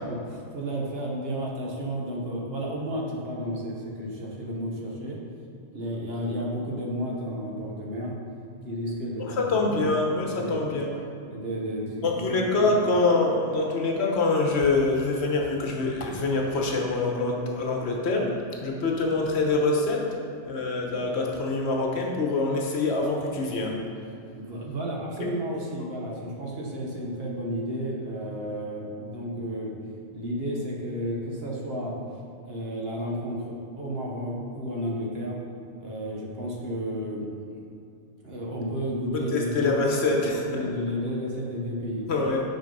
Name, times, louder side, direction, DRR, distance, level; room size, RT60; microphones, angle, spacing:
voice 1, 0.0-5.2 5.7-8.2 8.6-9.4 9.7-9.9 10.3-10.7 11.3-12.7 24.4-29.7 30.1-31.9 32.5-35.4 35.8-37.7 38.2-42.1, equal, 60° right, -2 dB, 1.3 m, -32 dB
voice 2, 9.2-10.9 12.0-20.1 20.5-23.8 39.1-40.5 42.1-42.4, left 3 dB, 65° left, 0 dB, 1.2 m, -25 dB
6.2 x 4.7 x 5.3 m, 2.6 s
omnidirectional pair, 1.2 m